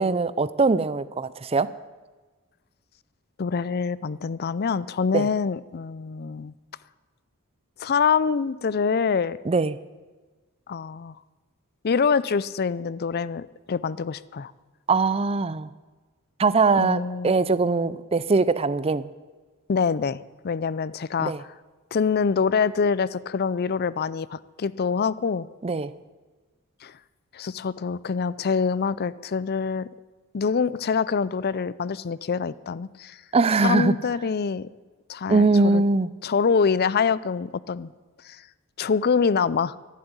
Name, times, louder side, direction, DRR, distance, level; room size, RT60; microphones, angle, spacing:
voice 1, 0.0-1.7 5.1-5.3 9.5-9.8 14.9-15.7 16.4-19.1 21.2-21.4 25.6-25.9 33.3-33.9 35.3-36.1, right 3 dB, 25° right, 16 dB, 0.5 m, -21 dB
voice 2, 3.4-6.5 7.8-9.4 10.7-11.1 11.8-14.5 16.8-17.3 19.7-21.5 21.9-25.5 26.8-26.9 27.3-29.9 30.3-33.2 33.6-34.7 35.1-35.8 36.2-37.9 38.2-38.4 38.8-39.7, left 5 dB, 45° left, 19 dB, 0.4 m, -25 dB
11.5 x 11.0 x 9.7 m, 1.3 s
head